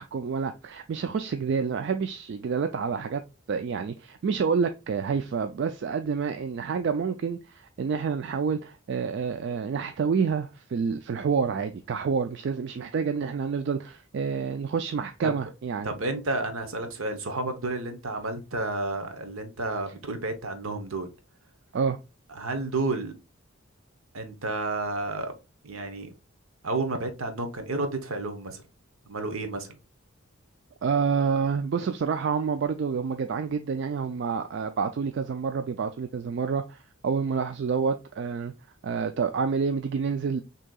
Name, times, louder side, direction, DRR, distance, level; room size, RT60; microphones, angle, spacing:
voice 1, 0.0-3.2 3.5-15.9 21.7-22.0 30.8-38.5 38.8-40.4, right 5 dB, 55° right, 0.3 m, -28 dB
voice 2, 15.8-21.1 22.3-23.1 24.1-25.3 25.6-26.1 26.6-28.6 29.1-29.8, right 2 dB, 70° right, 0.8 m, -31 dB
6.2 x 2.8 x 2.3 m
head